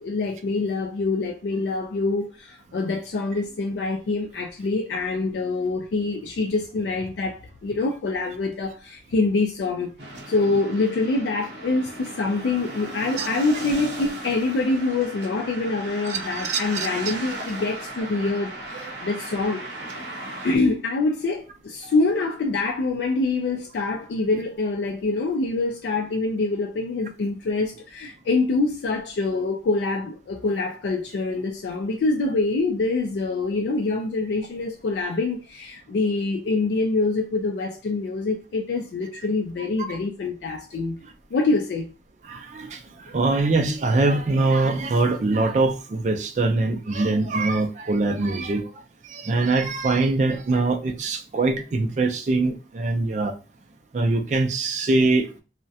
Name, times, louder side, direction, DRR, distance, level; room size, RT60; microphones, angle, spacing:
voice 1, 0.0-9.9 10.3-19.7 20.4-41.0 41.3-41.9, left 3 dB, 75° left, 0.3 m, -25 dB
sound 1, 10.0-20.6, right 2 dB, 75° right, 0.7 m, -36 dB
voice 2, 16.4-16.9 21.8-21.9 42.3-48.7 49.1-53.3 53.9-55.4, right 3 dB, 40° right, 0.3 m, -23 dB
2.3 x 2.1 x 2.6 m
head